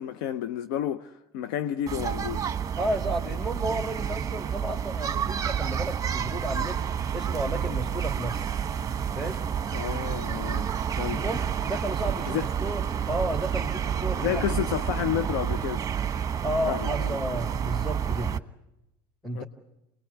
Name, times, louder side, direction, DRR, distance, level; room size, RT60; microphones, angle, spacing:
voice 1, 0.0-2.5 9.7-10.7 11.0-11.2 12.3-12.5 14.2-15.8 16.7-17.2 19.3-19.4, left 10 dB, 75° left, 0.8 m, -31 dB
sound 1, 1.9-18.4, right 8 dB, 30° right, 1.1 m, -29 dB
voice 2, 2.8-6.8 7.1-8.4 9.1-9.4 11.1-14.6 16.4-18.3 19.2-19.4, right 1 dB, 5° left, 2.2 m, -32 dB
26.0 x 20.5 x 8.1 m
hypercardioid pair, 85°, 11 cm